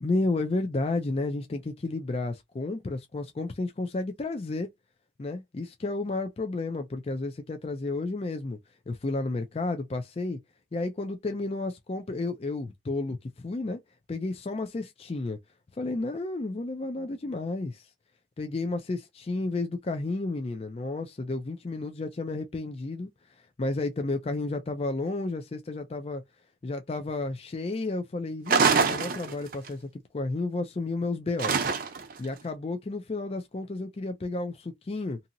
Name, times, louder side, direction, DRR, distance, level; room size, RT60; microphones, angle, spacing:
voice 1, 0.0-4.7 5.2-8.6 8.9-10.4 10.7-13.8 14.1-15.4 15.8-17.9 18.4-23.1 23.6-26.2 26.6-29.9 30.1-31.6 32.2-35.2, left 2 dB, 35° left, 0.4 m, -32 dB
sound 1, 28.5-29.7 31.4-32.2, right 5 dB, 50° right, 0.6 m, -24 dB
2.8 x 2.7 x 2.5 m
head